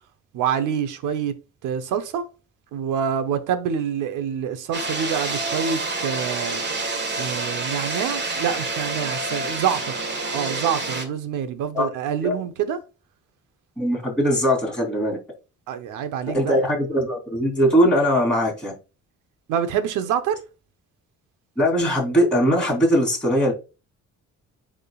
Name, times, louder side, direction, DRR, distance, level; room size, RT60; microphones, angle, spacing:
voice 1, 0.3-1.3 1.6-2.3 2.7-6.6 7.2-9.9 10.3-12.8 15.7-16.6 19.5-20.4, right 8 dB, 90° right, 0.9 m, -26 dB
sound 1, 4.7-11.0, right 3 dB, 35° right, 1.6 m, -28 dB
voice 2, 13.8-15.2 16.3-18.7 21.6-23.5, equal, 5° left, 3.1 m, -20 dB
10.5 x 3.7 x 2.4 m
cardioid pair, 90°, 30 cm